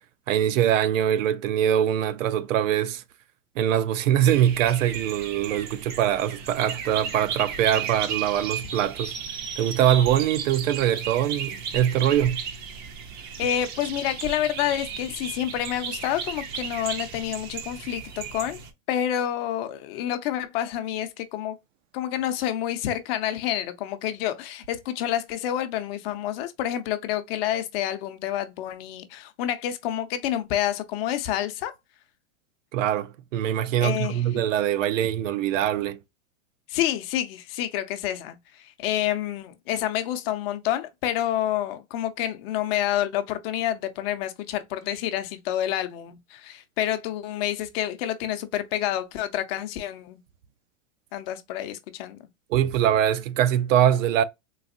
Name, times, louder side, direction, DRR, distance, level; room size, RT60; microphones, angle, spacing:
voice 1, 0.3-3.0 3.6-9.1 9.6-12.4 32.7-36.0 52.5-54.2, right 10 dB, 70° right, 0.6 m, -23 dB
sound 1, 4.2-18.7, right 7 dB, 25° right, 0.5 m, -35 dB
voice 2, 13.4-18.6 18.9-21.6 21.9-31.7 33.8-34.4 36.7-50.2 51.1-52.2, left 11 dB, 50° left, 0.7 m, -28 dB
4.0 x 2.5 x 2.5 m
hypercardioid pair, 135°, 40 cm